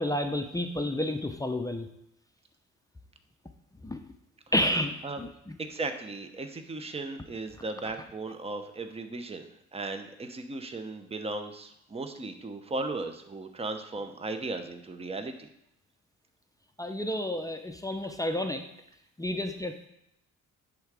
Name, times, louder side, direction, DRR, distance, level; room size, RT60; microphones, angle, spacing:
voice 1, 0.0-1.9 3.8-4.0 4.5-5.6 16.8-18.6 19.2-19.9, left 1 dB, 10° left, 5 dB, 0.6 m, -30 dB
voice 2, 5.6-15.5, right 2 dB, 20° right, 7 dB, 0.8 m, -36 dB
10.5 x 3.7 x 4.8 m, 0.80 s
cardioid pair, 90°, 30 cm